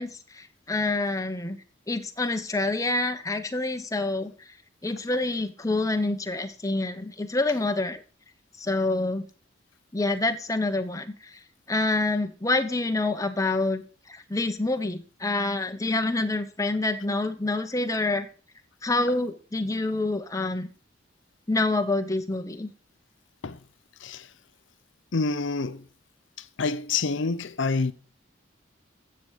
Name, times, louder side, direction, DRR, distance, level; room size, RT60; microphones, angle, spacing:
voice 1, 0.0-1.6 1.9-4.3 4.8-8.0 8.6-9.2 9.9-11.4 11.7-13.8 14.1-18.3 18.8-20.7 21.5-22.7, left 2 dB, 15° left, 1.0 m, -27 dB
voice 2, 25.1-25.8 26.4-27.9, left 4 dB, 75° left, 0.7 m, -27 dB
13.0 x 7.9 x 5.0 m
head